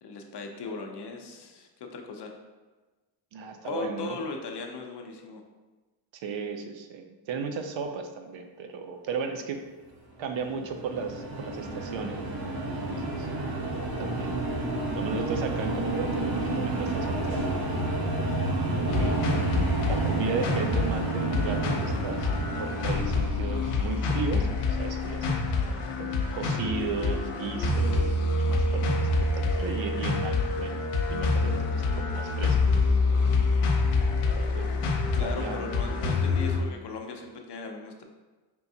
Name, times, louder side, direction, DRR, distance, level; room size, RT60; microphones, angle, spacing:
voice 1, 0.0-2.3 3.6-5.4 35.1-38.0, left 4 dB, 55° left, 3 dB, 0.7 m, -38 dB
voice 2, 3.3-4.2 6.1-9.6 10.2-12.4 12.9-13.3 13.7-14.4 14.9-17.7 18.7-19.1 19.8-22.3 22.6-25.4 26.0-32.8 33.1-33.3 34.3-34.7 35.2-35.6, right 5 dB, 65° right, 5 dB, 0.6 m, -35 dB
sound 1, 10.2-24.7, right 2 dB, 45° right, 0.9 m, -31 dB
sound 2, 18.9-36.6, left 3 dB, 85° left, 0.8 m, -27 dB
4.4 x 3.4 x 2.7 m, 1.2 s
cardioid pair, 100°, 50 cm